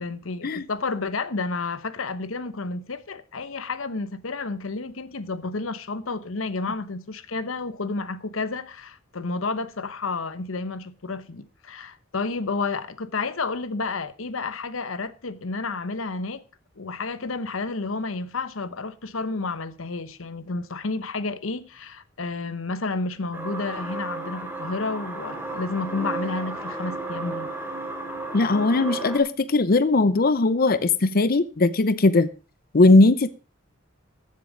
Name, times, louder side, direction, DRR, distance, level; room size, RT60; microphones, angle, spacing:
voice 1, 0.0-16.4 16.8-27.5, left 3 dB, 85° left, 1.0 m, -31 dB
sound 1, 23.3-29.2, right 2 dB, 10° right, 3.3 m, -33 dB
voice 2, 28.3-32.3 32.7-33.3, left 2 dB, 50° left, 0.6 m, -19 dB
14.5 x 7.6 x 5.0 m
head